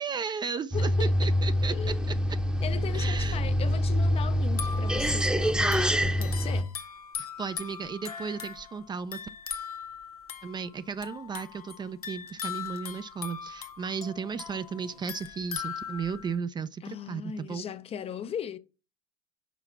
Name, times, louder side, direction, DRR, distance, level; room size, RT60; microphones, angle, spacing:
voice 1, 0.0-1.7 2.9-3.4 7.2-9.2 10.4-17.6, right 6 dB, 25° right, 0.5 m, -35 dB
voice 2, 0.7-1.1 1.7-2.1 2.6-6.7 16.8-18.6, left 9 dB, 30° left, 0.6 m, -38 dB
sound 1, 0.7-6.6, equal, 5° right, 0.8 m, -26 dB
sound 2, 4.5-16.4, left 7 dB, 90° left, 0.8 m, -40 dB
6.0 x 4.8 x 5.8 m
hypercardioid pair, 75°, 19 cm